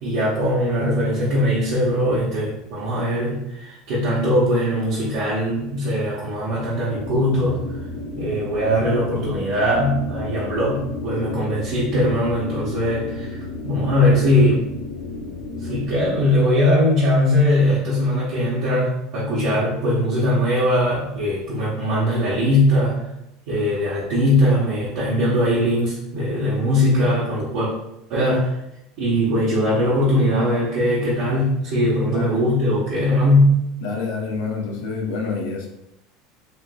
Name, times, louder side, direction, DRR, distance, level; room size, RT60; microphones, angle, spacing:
voice 1, 0.0-7.6 8.2-13.4 13.6-14.6 15.6-23.0 23.5-27.7 28.1-28.5 29.0-33.6, left 1 dB, 70° right, -9 dB, 1.1 m, -20 dB
sound 1, 6.9-16.4, left 3 dB, 50° left, 0.7 m, -32 dB
voice 2, 32.1-32.4 33.8-35.7, left 4 dB, 85° left, -1 dB, 0.7 m, -27 dB
4.3 x 2.5 x 2.3 m, 0.83 s
supercardioid pair, 115°, 0 cm